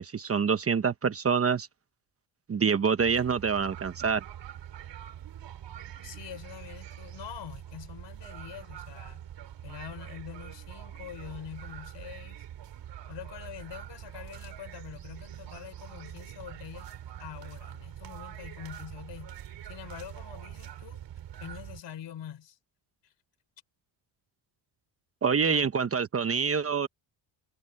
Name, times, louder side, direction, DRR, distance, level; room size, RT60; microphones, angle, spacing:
voice 1, 0.0-1.7 2.5-4.2 25.2-26.9, right 6 dB, 30° right, 1.1 m, -26 dB
sound 1, 3.0-21.8, right 11 dB, 60° right, 3.7 m, -44 dB
voice 2, 6.0-9.2 9.6-12.5 13.1-16.9 17.2-19.4 19.6-21.1 21.4-22.6 23.0-23.1 25.4-25.6, left 10 dB, 60° left, 3.9 m, -45 dB
cardioid pair, 135°, 47 cm